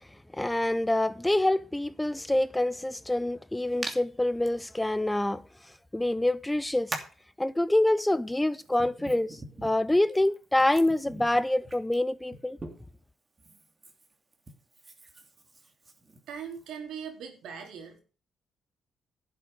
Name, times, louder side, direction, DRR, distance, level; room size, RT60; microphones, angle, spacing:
voice 1, 0.3-5.4 5.9-7.0 7.4-12.6, left 1 dB, 10° left, 0.6 m, -26 dB
Hands, 3.8-4.0 4.4-4.5 5.8-5.9 6.9-7.2 8.2-13.0 13.4-16.7, right 2 dB, 25° right, 2.7 m, -43 dB
voice 2, 16.3-18.0, right 7 dB, 80° right, 3.8 m, -40 dB
11.5 x 7.6 x 6.6 m
cardioid pair, 90°, 0 cm